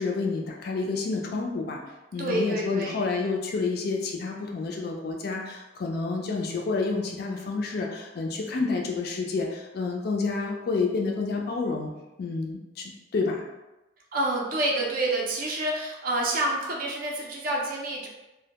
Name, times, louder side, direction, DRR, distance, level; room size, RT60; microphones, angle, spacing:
voice 1, 0.0-1.8 2.1-11.9 12.2-13.4, left 4 dB, 50° left, 1 dB, 0.3 m, -29 dB
voice 2, 2.2-3.0 14.1-18.1, right 1 dB, 45° right, -1 dB, 0.4 m, -28 dB
2.1 x 2.1 x 2.8 m, 1.0 s
head